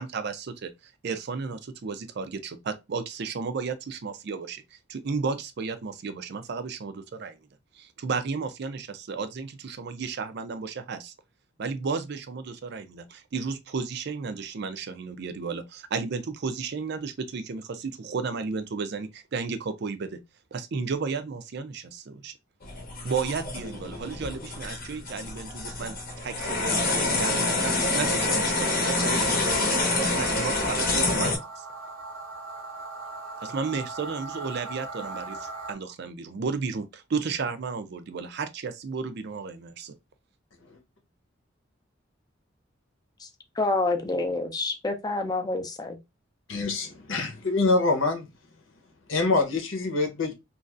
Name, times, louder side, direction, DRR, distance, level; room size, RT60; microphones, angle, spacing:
voice 1, 0.0-7.4 7.7-11.1 11.6-20.2 20.5-22.3 23.0-31.6 33.4-39.9, right 5 dB, 55° right, 0.4 m, -33 dB
sound 1, 22.6-31.4, left 2 dB, 50° left, 0.8 m, -27 dB
sound 2, 27.1-35.7, right 3 dB, 85° right, 0.9 m, -40 dB
voice 2, 43.6-46.0, left 2 dB, 20° left, 0.5 m, -27 dB
voice 3, 46.5-48.3 49.1-50.3, left 3 dB, 80° left, 0.9 m, -25 dB
3.0 x 2.6 x 2.4 m
head